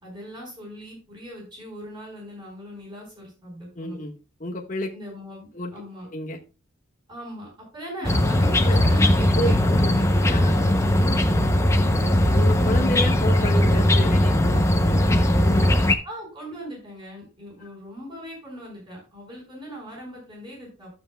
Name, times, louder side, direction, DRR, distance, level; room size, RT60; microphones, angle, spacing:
voice 1, 0.0-4.0 4.9-6.1 7.1-10.0 10.3-10.6 11.8-12.1 16.0-20.9, equal, 20° right, -2 dB, 4.7 m, -40 dB
voice 2, 3.7-4.1 4.4-4.9 5.5-5.7 6.1-6.4 8.6-8.8 9.3-10.5 12.3-15.7, left 1 dB, 40° left, 0 dB, 1.4 m, -30 dB
sound 1, 8.0-16.0, left 1 dB, 15° left, 0.6 m, -19 dB
12.5 x 7.7 x 2.2 m, 0.34 s
head